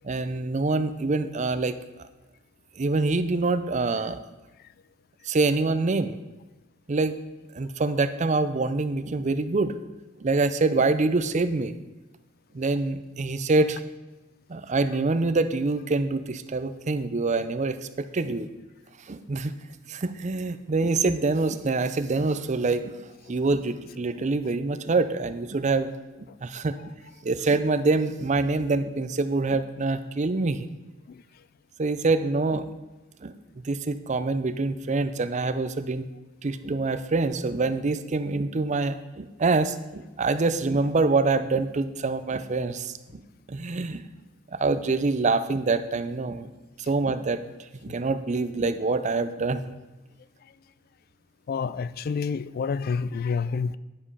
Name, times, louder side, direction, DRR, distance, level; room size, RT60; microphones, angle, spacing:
voice 1, 0.0-1.8 2.8-4.2 5.2-6.2 6.9-7.2 7.5-9.7 10.2-11.8 12.5-13.8 14.5-18.5 19.1-19.5 19.9-23.0 23.3-25.9 26.2-26.8 27.2-30.7 31.8-32.7 33.2-36.1 36.4-43.2 43.5-44.0 44.5-46.5 46.8-49.6, right 3 dB, 35° right, 0.5 m, -25 dB
voice 2, 51.5-53.8, left 5 dB, 45° left, 0.3 m, -28 dB
10.5 x 5.1 x 5.5 m
head